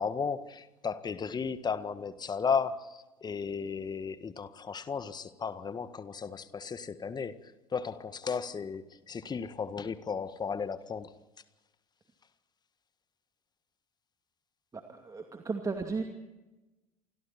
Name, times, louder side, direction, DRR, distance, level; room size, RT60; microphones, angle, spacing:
voice 1, 0.0-11.1, left 6 dB, 25° left, 13 dB, 1.6 m, -35 dB
voice 2, 14.7-16.0, right 4 dB, 20° right, 5 dB, 2.4 m, -35 dB
29.0 x 25.5 x 4.4 m, 1.1 s
figure-of-eight pair, 70°, 18 cm